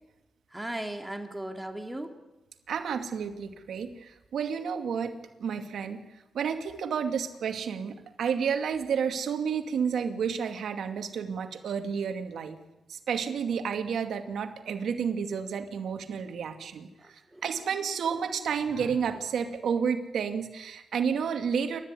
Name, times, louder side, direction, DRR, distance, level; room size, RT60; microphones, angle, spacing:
voice 1, 0.5-2.2 17.0-17.4, right 1 dB, 10° right, 5 dB, 2.8 m, -37 dB
voice 2, 2.7-6.0 6.3-12.6 12.9-21.8, right 6 dB, 80° right, 6 dB, 2.4 m, -31 dB
28.5 x 13.5 x 9.8 m, 1.0 s
cardioid pair, 95°, 0 cm